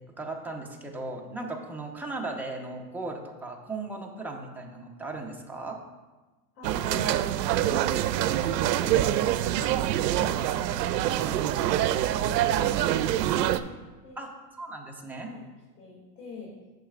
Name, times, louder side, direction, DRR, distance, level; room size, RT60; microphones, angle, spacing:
voice 1, 0.2-5.8 14.2-15.3, right 2 dB, 5° right, 0 dB, 0.7 m, -37 dB
voice 2, 6.5-13.6 14.0-14.2 15.1-15.5 15.8-16.7, left 3 dB, 65° left, -5 dB, 2.5 m, -46 dB
sound 1, 6.6-13.6, right 12 dB, 75° right, 0.6 m, -25 dB
11.0 x 6.3 x 2.4 m, 1.2 s
hypercardioid pair, 125°, 49 cm